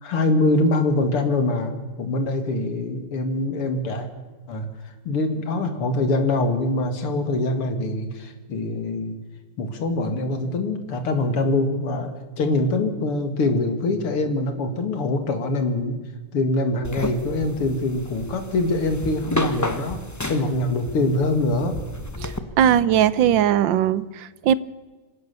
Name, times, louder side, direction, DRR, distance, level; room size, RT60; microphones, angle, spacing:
voice 1, 0.0-4.1 4.5-4.7 5.0-9.2 9.6-16.0 16.3-20.0 20.3-21.8, left 2 dB, 80° left, 8 dB, 3.1 m, -24 dB
sound 1, 16.8-22.4, left 1 dB, 10° left, 0.8 m, -32 dB
voice 2, 22.6-24.6, right 10 dB, 65° right, 18 dB, 1.4 m, -19 dB
26.0 x 16.0 x 6.9 m, 1.3 s
omnidirectional pair, 2.4 m